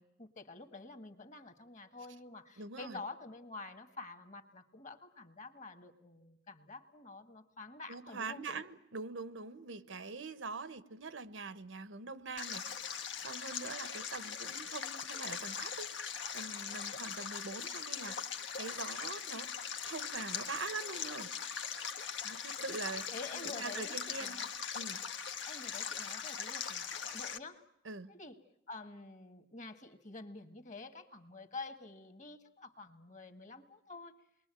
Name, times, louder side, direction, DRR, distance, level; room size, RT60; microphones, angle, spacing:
voice 1, 0.0-8.6 22.6-22.8 23.1-24.5 25.4-27.6 28.1-28.4 28.7-34.2, left 3 dB, 40° left, 8 dB, 1.7 m, -48 dB
voice 2, 2.6-3.0 7.9-18.1 18.6-19.5 19.9-21.3 22.2-23.1 23.3-24.4 24.7-25.0 27.8-28.1, right 4 dB, 90° right, 14 dB, 1.1 m, -44 dB
Stream, 12.4-27.4, left 7 dB, 75° left, 1.4 m, -41 dB
28.5 x 22.0 x 9.0 m, 0.83 s
head